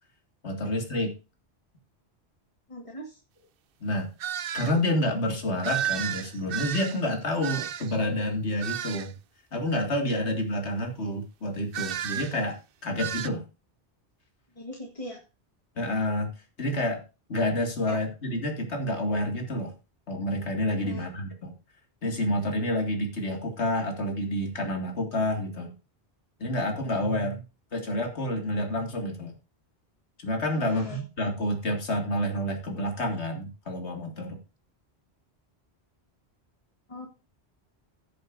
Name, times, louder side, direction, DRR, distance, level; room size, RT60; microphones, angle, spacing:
voice 1, 0.4-1.1 3.8-4.1 4.5-9.1 9.5-12.6 12.8-13.4 15.8-16.3 16.6-17.0 17.3-19.7 20.1-21.5 22.0-25.7 26.4-27.4 27.7-29.3 30.2-34.4, left 1 dB, 80° left, 3 dB, 2.3 m, -29 dB
voice 2, 2.7-3.2 14.6-15.2 17.9-18.0 20.8-21.0 30.5-31.0 36.9-37.1, left 1 dB, 30° left, 2 dB, 1.4 m, -39 dB
sound 1, 4.2-4.7 5.6-8.0 8.6-9.1 11.7-12.4 13.0-13.3, right 10 dB, 60° right, 0.7 m, -32 dB
16.5 x 6.9 x 2.6 m, 0.31 s
omnidirectional pair, 1.1 m